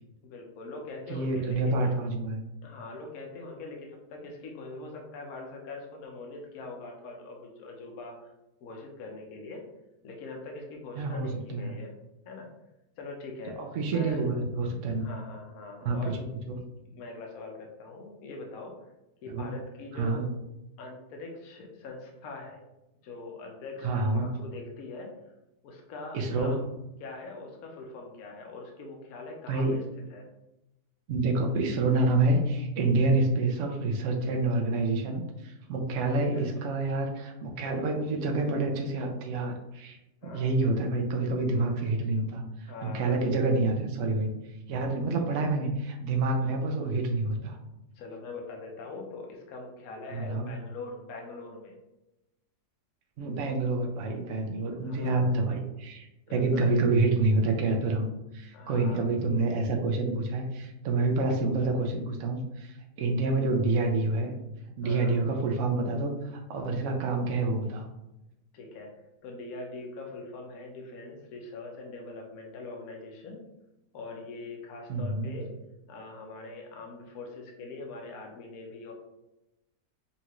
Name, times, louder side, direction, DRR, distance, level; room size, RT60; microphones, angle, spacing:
voice 1, 0.2-2.0 2.6-8.3 8.6-9.6 10.0-11.9 12.2-12.5 13.0-13.6 13.9-14.3 15.0-16.1 16.9-18.7 19.2-20.3 20.8-22.6 23.0-25.1 25.6-26.7 27.0-29.8 30.1-30.3 36.0-36.5 40.2-40.5 42.7-43.3 47.9-51.8 54.8-55.4 56.3-56.7 58.5-59.1 64.8-65.2 68.5-68.9 69.2-73.4 73.9-75.6 75.9-78.9, left 3 dB, 65° left, 1 dB, 1.2 m, -42 dB
voice 2, 1.1-2.4 11.0-11.7 13.6-15.1 15.8-16.2 16.5-16.6 19.3-19.5 19.9-20.2 23.8-24.3 26.1-26.6 29.5-29.8 31.1-40.0 40.2-44.3 44.7-47.6 50.1-50.5 53.2-58.1 58.3-64.3 64.8-67.9 74.9-75.4, right 2 dB, 60° right, 2 dB, 0.9 m, -28 dB
5.5 x 2.5 x 3.0 m, 0.93 s
omnidirectional pair, 1.7 m